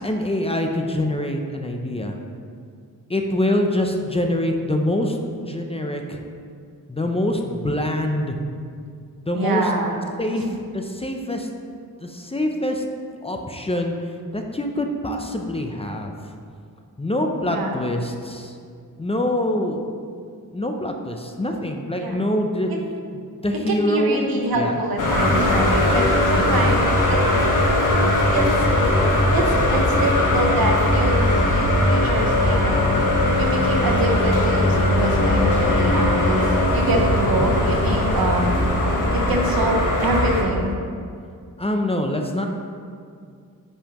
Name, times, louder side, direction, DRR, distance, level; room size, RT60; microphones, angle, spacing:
voice 1, 0.0-2.2 3.1-6.2 6.9-8.4 9.2-9.7 10.2-11.5 12.0-12.8 13.2-14.0 14.3-16.2 17.0-18.5 19.0-19.8 20.5-22.7 23.1-24.2 24.5-24.8 26.5-26.8 41.6-42.5, left 1 dB, 15° left, 3 dB, 0.6 m, -25 dB
voice 2, 9.3-10.0 10.3-10.6 17.5-17.7 22.0-22.2 22.7-22.8 23.7-27.2 28.3-28.4 29.3-33.0 33.4-36.4 36.7-38.6 39.1-40.7, right 1 dB, 85° right, 1 dB, 1.1 m, -25 dB
sound 1, 25.0-40.4, left 1 dB, 60° left, 1.3 m, -19 dB
9.7 x 5.5 x 3.0 m, 2.2 s
wide cardioid pair, 105°, 35 cm